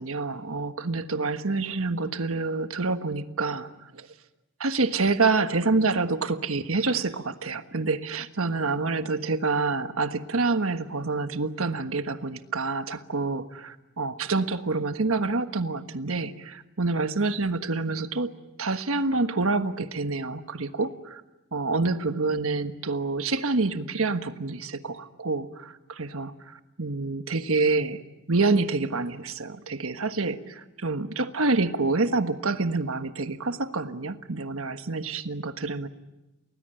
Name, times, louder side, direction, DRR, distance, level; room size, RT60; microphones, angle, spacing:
voice 1, 0.0-4.1 4.6-18.3 18.6-21.2 21.5-28.0 28.3-35.9, right 3 dB, 75° right, 9 dB, 1.4 m, -27 dB
30.0 x 19.5 x 9.0 m, 1.1 s
head